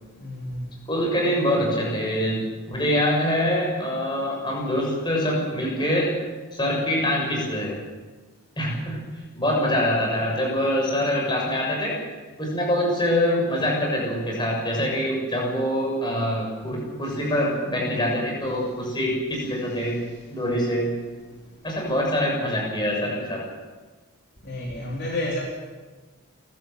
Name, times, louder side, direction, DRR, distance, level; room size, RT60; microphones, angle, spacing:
voice 1, 0.0-0.8 17.0-17.1 20.0-20.2 21.3-21.7 24.4-25.4, left 1 dB, 50° left, -3 dB, 3.9 m, -32 dB
voice 2, 0.9-6.1 6.5-7.8 8.6-9.0 9.3-12.0 12.4-20.0 20.3-20.9 21.6-23.4, equal, 20° left, -2 dB, 6.6 m, -24 dB
29.5 x 14.0 x 7.8 m, 1.3 s
head